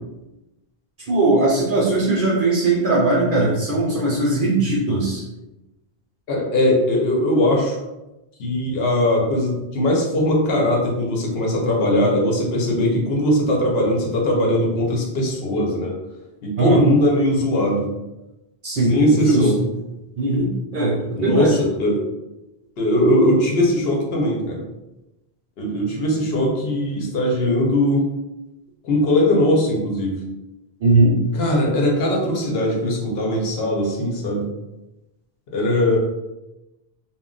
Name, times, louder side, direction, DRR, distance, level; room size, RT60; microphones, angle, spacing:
voice 1, 1.1-5.2 16.6-16.8 18.6-19.0 19.2-19.5 20.2-21.6 30.8-31.2, right 2 dB, 60° right, -3 dB, 0.7 m, -19 dB
voice 2, 6.3-7.8 8.4-15.9 16.4-17.9 18.8-19.6 21.1-22.0 22.8-24.6 25.6-28.1 28.8-30.1 31.3-34.5 35.5-36.0, left 1 dB, 75° left, -1 dB, 0.9 m, -20 dB
2.2 x 2.1 x 3.7 m, 0.99 s
omnidirectional pair, 1.0 m